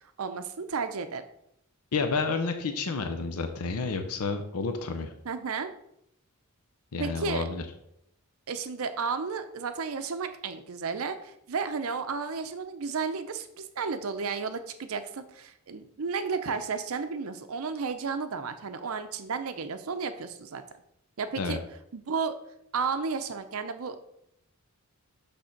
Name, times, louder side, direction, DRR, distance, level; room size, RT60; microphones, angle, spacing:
voice 1, 0.2-1.2 5.2-5.7 7.0-7.5 8.5-20.6 21.2-21.6 21.9-22.3 22.7-24.0, right 5 dB, 70° right, 9 dB, 0.6 m, -33 dB
voice 2, 1.9-5.1 6.9-7.6 21.4-21.6, left 4 dB, 85° left, 6 dB, 0.7 m, -30 dB
6.4 x 3.4 x 5.8 m, 0.77 s
head